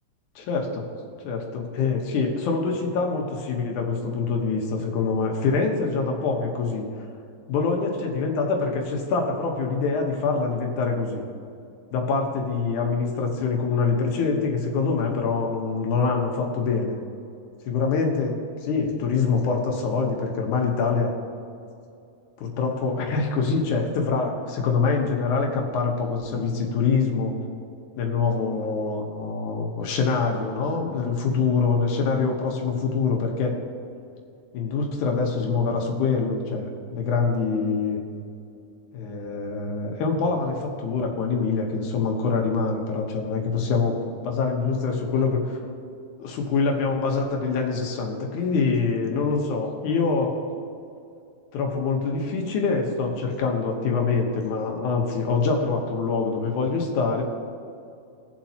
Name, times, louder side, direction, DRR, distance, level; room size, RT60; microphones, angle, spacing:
voice 1, 0.4-0.9 1.2-6.9 7.5-11.2 11.9-17.0 17.7-21.1 22.4-27.3 28.0-33.5 34.5-38.0 38.9-45.6 46.2-50.4 51.5-57.2, left 4 dB, 80° left, 2 dB, 2.5 m, -25 dB
19.0 x 7.3 x 2.8 m, 2.5 s
omnidirectional pair, 3.5 m